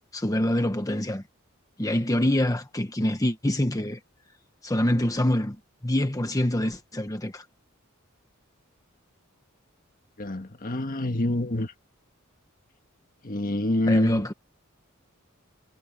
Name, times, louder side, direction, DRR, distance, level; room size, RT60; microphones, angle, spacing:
voice 1, 0.1-1.2 1.8-4.0 4.6-5.6 5.8-7.4 13.9-14.3, left 1 dB, 15° left, 1.1 m, -25 dB
voice 2, 10.2-11.7 13.2-14.3, left 1 dB, 40° left, 1.6 m, -27 dB
head